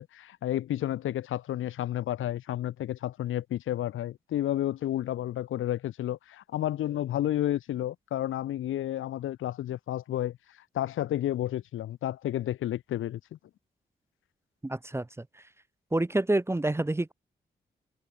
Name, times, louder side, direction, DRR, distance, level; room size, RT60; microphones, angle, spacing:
voice 1, 0.0-10.4 10.7-13.4, left 12 dB, 80° left, 0.7 m, -31 dB
voice 2, 14.6-15.4 15.9-17.1, right 2 dB, 15° right, 0.6 m, -28 dB
supercardioid pair, 45°, 20 cm